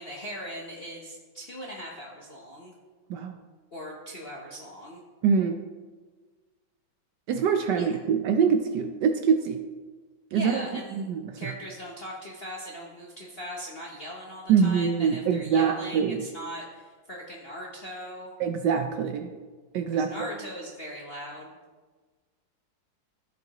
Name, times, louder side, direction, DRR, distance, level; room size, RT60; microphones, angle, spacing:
voice 1, 0.0-2.8 3.7-5.0 7.8-7.9 10.3-11.1 11.4-18.3 19.9-21.6, equal, 50° left, -3 dB, 0.7 m, -39 dB
voice 2, 5.2-5.6 7.3-9.6 10.3-10.6 10.9-11.4 14.5-16.2 18.4-19.3 19.7-20.3, right 6 dB, 75° right, 6 dB, 1.0 m, -24 dB
14.0 x 5.2 x 2.9 m, 1.4 s
omnidirectional pair, 2.2 m